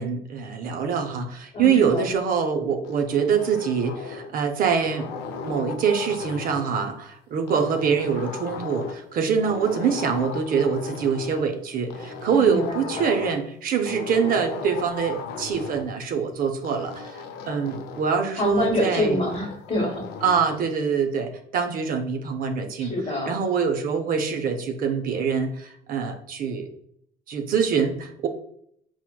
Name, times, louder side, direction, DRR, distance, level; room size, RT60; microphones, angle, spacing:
voice 1, 0.0-17.2 17.5-19.2 20.2-22.9 23.3-26.7 27.3-28.3, right 6 dB, 55° right, 5 dB, 0.5 m, -24 dB
voice 2, 1.5-2.1 12.2-13.1 18.4-20.1 22.8-23.4, left 1 dB, 40° left, 1 dB, 1.2 m, -26 dB
sound 1, 2.8-4.4 4.8-6.8 7.5-9.1 9.4-11.4 11.9-13.5 13.8-15.9 16.6-18.2 18.6-20.6, left 5 dB, 85° left, 0.4 m, -37 dB
4.3 x 2.1 x 2.2 m, 0.70 s
cardioid pair, 110°, 17 cm